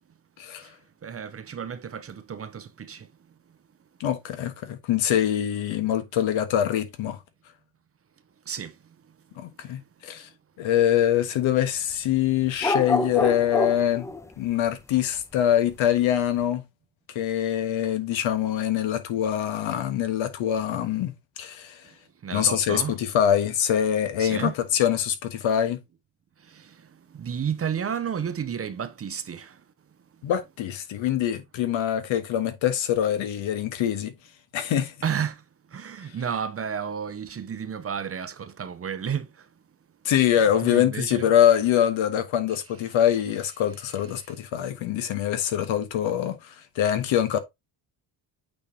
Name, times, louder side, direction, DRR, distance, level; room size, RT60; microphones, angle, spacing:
voice 1, 0.4-0.7 4.0-7.2 9.4-10.3 10.6-14.1 14.4-16.6 17.1-21.8 22.3-25.8 30.2-34.1 34.5-34.9 40.0-47.4, left 10 dB, 75° left, 1.4 m, -24 dB
voice 2, 1.0-3.1 8.5-8.7 22.2-23.0 24.2-24.6 27.1-29.5 35.0-35.4 35.7-39.3 40.6-41.3, right 7 dB, 30° right, 0.7 m, -31 dB
sound 1, 12.6-14.3, left 2 dB, 5° left, 0.3 m, -26 dB
8.6 x 4.5 x 2.8 m
cardioid pair, 130°, 47 cm